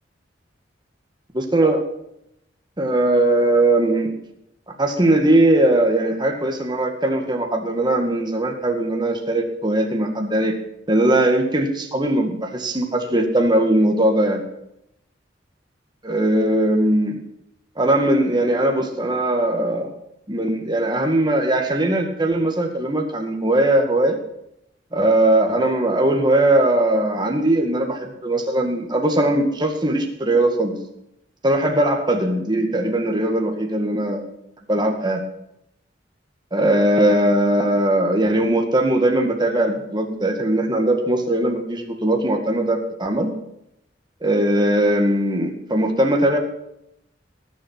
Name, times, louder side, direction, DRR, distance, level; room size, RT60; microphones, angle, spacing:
voice 1, 1.3-1.8 2.8-4.1 4.8-10.5 10.9-14.4 16.0-17.2 17.8-19.9 20.3-24.2 24.9-30.8 31.4-34.3 34.7-35.2 36.5-43.3 44.2-46.4, right 1 dB, 25° right, 3 dB, 2.0 m, -19 dB
19.5 x 7.5 x 5.7 m, 0.79 s
head